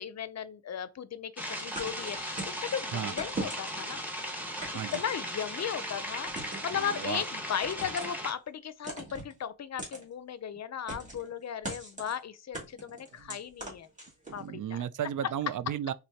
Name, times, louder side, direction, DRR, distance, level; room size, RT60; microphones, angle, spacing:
voice 1, 0.0-4.0 4.9-13.9 14.3-14.8, left 8 dB, 50° left, 0.6 m, -36 dB
sound 1, 1.4-8.3, equal, 5° right, 1.3 m, -37 dB
sound 2, 1.8-2.6 3.2-3.9 4.6-5.5 6.3-6.7 7.6-8.2 8.8-9.3 9.8-10.0 10.9-11.3 11.6-12.2 12.5-14.4, right 2 dB, 20° right, 2.3 m, -40 dB
voice 2, 6.8-7.2 13.2-13.4 14.4-15.9, right 10 dB, 60° right, 0.5 m, -34 dB
4.4 x 3.9 x 2.8 m
cardioid pair, 85°, 35 cm